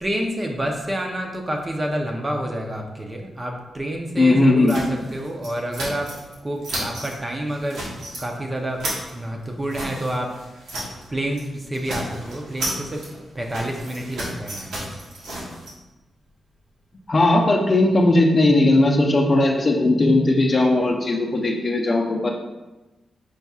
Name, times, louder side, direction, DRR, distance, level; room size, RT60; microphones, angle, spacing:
voice 1, 0.0-6.1 6.4-7.8 8.2-8.8 9.1-10.3 11.1-13.0 13.3-14.9, right 1 dB, 25° right, 1 dB, 0.6 m, -28 dB
voice 2, 4.2-4.8 17.1-22.3, left 2 dB, 40° left, 1 dB, 0.5 m, -18 dB
sound 1, 4.7-6.4 6.6-7.2 7.5-8.2 8.6-11.1 11.3-11.5 11.7-15.7, right 1 dB, 90° right, 1.3 m, -33 dB
4.7 x 4.0 x 2.3 m, 1.1 s
cardioid pair, 85°, 0 cm